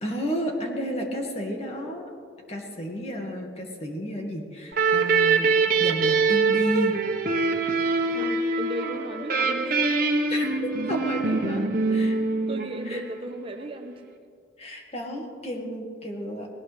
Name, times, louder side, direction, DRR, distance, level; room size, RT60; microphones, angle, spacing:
voice 1, 0.0-2.1 2.5-5.5 5.8-7.0 10.3-10.5 10.9-12.2 12.8-13.0 14.6-16.5, equal, 35° left, 1 dB, 2.1 m, -31 dB
sound 1, 4.7-13.2, right 4 dB, 55° right, 1.4 m, -24 dB
voice 2, 8.1-9.8 12.5-14.0, right 1 dB, 30° right, 5 dB, 1.0 m, -35 dB
20.5 x 18.0 x 3.5 m, 2.2 s
head